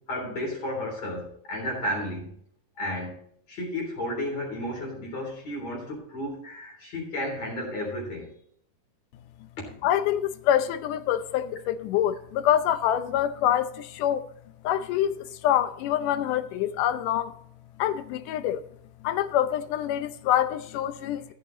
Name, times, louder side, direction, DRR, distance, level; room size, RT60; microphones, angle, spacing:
voice 1, 0.1-2.3 2.8-3.2 3.5-8.3 9.6-9.7, left 1 dB, 55° left, 4.6 m, -32 dB
voice 2, 9.8-14.2 14.6-17.3 17.8-18.6 19.0-21.2, left 11 dB, 85° left, 2.3 m, -26 dB
15.0 x 7.3 x 3.9 m
omnidirectional pair, 3.7 m